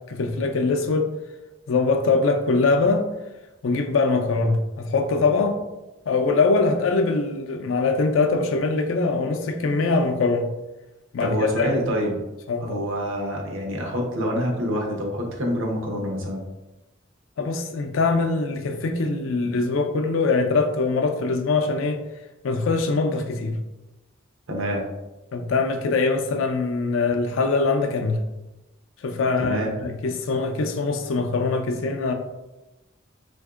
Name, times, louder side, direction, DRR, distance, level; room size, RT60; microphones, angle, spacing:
voice 1, 0.1-1.1 1.7-3.0 3.6-5.6 6.1-10.5 11.1-11.7 12.5-12.8 17.4-22.0 22.4-23.6 25.3-28.2 29.0-32.1, left 3 dB, 85° left, 5 dB, 0.4 m, -22 dB
voice 2, 11.2-12.2 12.6-16.4 24.5-24.8 29.4-29.8, equal, 85° right, 0 dB, 0.7 m, -26 dB
3.5 x 2.5 x 2.3 m, 1.0 s
head